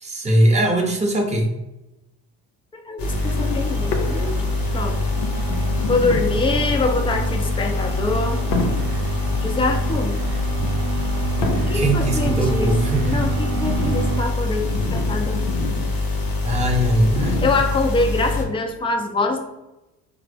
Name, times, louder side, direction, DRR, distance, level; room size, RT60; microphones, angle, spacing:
voice 1, 0.0-1.5 11.7-13.1 16.4-17.4, right 1 dB, 15° right, 0 dB, 0.8 m, -20 dB
voice 2, 2.8-4.3 4.7-5.0 5.9-8.4 9.4-10.2 11.7-12.8 13.1-15.4 17.4-19.4, left 3 dB, 10° left, 3 dB, 0.4 m, -24 dB
sound 1, 3.0-18.4, left 2 dB, 45° left, 0.9 m, -24 dB
sound 2, 3.0-14.2, right 5 dB, 55° right, 0.6 m, -30 dB
sound 3, 3.3-4.6 5.1-6.6 7.4-7.7 8.5-9.2 10.4-10.6 11.4-12.0 12.8-16.1 16.3-16.4 17.1-17.9 18.7-18.8, left 3 dB, 90° left, 0.5 m, -29 dB
3.4 x 2.0 x 3.3 m, 0.97 s
hypercardioid pair, 65°, 48 cm